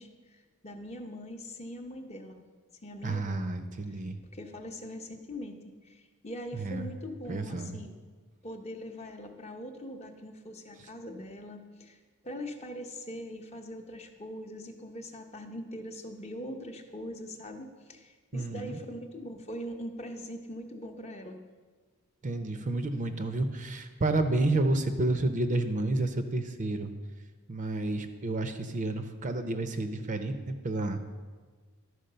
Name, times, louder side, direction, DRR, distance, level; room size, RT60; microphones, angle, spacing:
voice 1, 0.0-2.5 2.8-3.5 3.9-4.0 4.3-7.9 8.4-21.4, equal, 30° left, 4 dB, 0.7 m, -42 dB
voice 2, 3.0-4.2 6.5-6.9 7.3-7.8 18.3-18.8 22.2-26.9 27.5-31.0, right 2 dB, 35° right, 8 dB, 0.5 m, -30 dB
11.5 x 4.7 x 6.6 m, 1.4 s
head